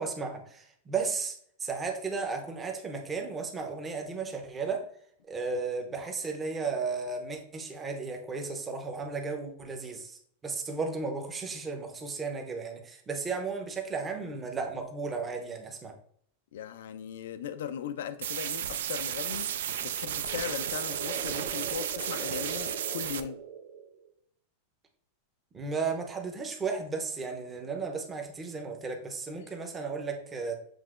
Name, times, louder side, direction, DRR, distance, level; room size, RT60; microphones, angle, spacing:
voice 1, 0.0-4.8 5.3-15.9 25.5-30.5, right 4 dB, 15° right, 0.7 m, -34 dB
voice 2, 16.5-23.4 29.4-29.5, left 9 dB, 80° left, 0.3 m, -38 dB
sound 1, 18.2-23.2, right 10 dB, 80° right, 0.3 m, -33 dB
sound 2, 19.7-24.1, right 6 dB, 55° right, 0.7 m, -42 dB
7.4 x 2.8 x 2.4 m
supercardioid pair, 160°, 0 cm